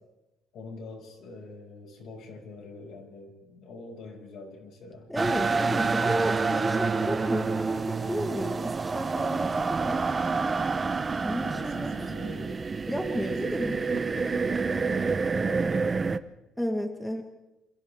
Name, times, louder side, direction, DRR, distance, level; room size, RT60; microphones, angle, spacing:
voice 1, 0.5-5.1 11.4-12.6 13.1-16.2, left 3 dB, 55° left, 1 dB, 6.1 m, -44 dB
voice 2, 5.1-10.0 11.2-11.9 12.9-13.7 16.6-17.2, equal, 5° left, 4 dB, 1.6 m, -32 dB
sound 1, 5.2-16.2, right 4 dB, 20° right, 0.7 m, -28 dB
27.5 x 27.0 x 3.6 m, 0.99 s
cardioid pair, 150°, 0 cm